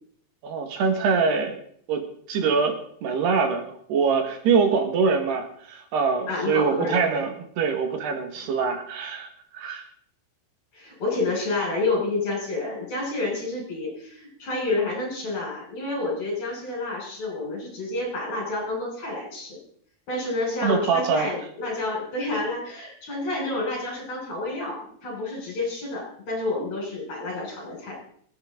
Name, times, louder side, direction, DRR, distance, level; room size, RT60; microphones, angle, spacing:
voice 1, 0.4-1.6 1.9-9.9 20.6-21.3, right 5 dB, 80° right, 5 dB, 3.8 m, -24 dB
voice 2, 6.3-7.2 8.4-8.5 10.7-19.6 20.1-27.9, left 2 dB, 45° left, -2 dB, 7.3 m, -29 dB
24.5 x 9.5 x 3.9 m, 0.63 s
omnidirectional pair, 4.7 m